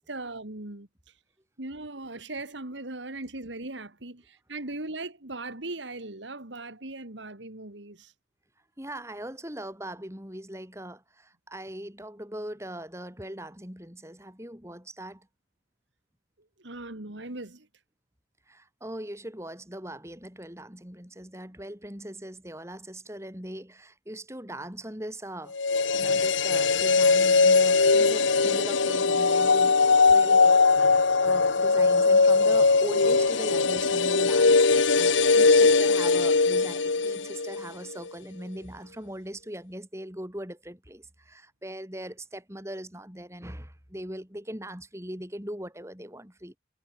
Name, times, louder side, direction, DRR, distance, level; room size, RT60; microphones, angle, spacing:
voice 1, 0.1-0.9 1.6-8.1 16.6-17.7, right 2 dB, 80° right, 2.9 m, -39 dB
voice 2, 8.8-15.3 18.5-25.5 25.9-29.8 30.1-30.6 31.2-46.6, right 1 dB, 15° right, 5.2 m, -40 dB
sound 1, 25.5-37.7 37.9-38.0, left 4 dB, 85° left, 1.2 m, -21 dB
head